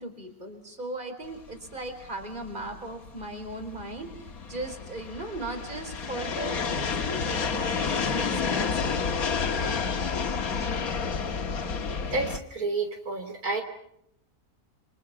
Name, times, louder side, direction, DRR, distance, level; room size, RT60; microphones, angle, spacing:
voice 1, 0.0-9.7, right 2 dB, 30° right, 6 dB, 4.5 m, -38 dB
sound 1, 1.5-12.4, left 5 dB, 70° left, 1.9 m, -30 dB
voice 2, 12.1-13.6, right 3 dB, 70° right, 4 dB, 3.8 m, -30 dB
29.5 x 26.5 x 5.9 m, 0.74 s
omnidirectional pair, 1.6 m